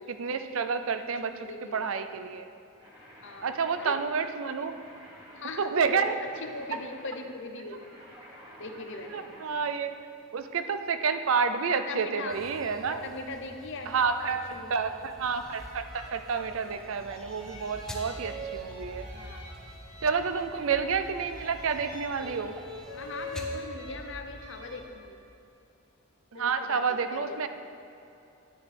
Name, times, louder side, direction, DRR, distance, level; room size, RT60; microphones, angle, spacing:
voice 1, 0.1-1.5 1.7-2.5 3.4-4.8 5.6-6.2 9.1-9.9 10.3-13.0 13.9-19.1 20.0-22.6 26.3-27.5, right 5 dB, 65° right, 9 dB, 0.5 m, -29 dB
voice 2, 1.2-1.9 3.2-3.9 5.3-7.8 8.6-9.3 11.7-12.4 13.0-13.9 14.3-14.8 19.1-19.6 22.9-25.2 26.3-26.8 27.1-27.5, left 3 dB, 60° left, 5 dB, 0.7 m, -40 dB
sound 1, 2.8-9.7, equal, 20° right, 1.5 m, -52 dB
sound 2, 12.3-23.7, equal, 5° left, 0.7 m, -48 dB
sound 3, 15.2-24.9, equal, 45° right, 1.7 m, -43 dB
10.0 x 9.3 x 3.4 m, 2.7 s
head